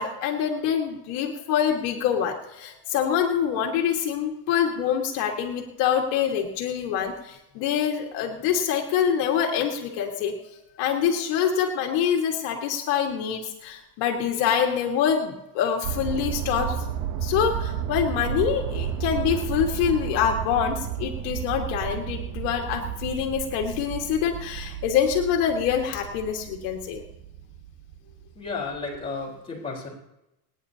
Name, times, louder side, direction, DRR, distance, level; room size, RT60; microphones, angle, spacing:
voice 1, 0.0-10.3 10.8-16.8 17.2-27.0, left 8 dB, 65° left, 1 dB, 1.8 m, -25 dB
sound 1, 15.8-28.5 29.0-29.1, right 9 dB, 45° right, 0.9 m, -32 dB
voice 2, 28.3-29.9, left 4 dB, 10° left, -4 dB, 3.8 m, -33 dB
29.0 x 9.9 x 2.8 m, 0.89 s
cardioid pair, 160°, 45 cm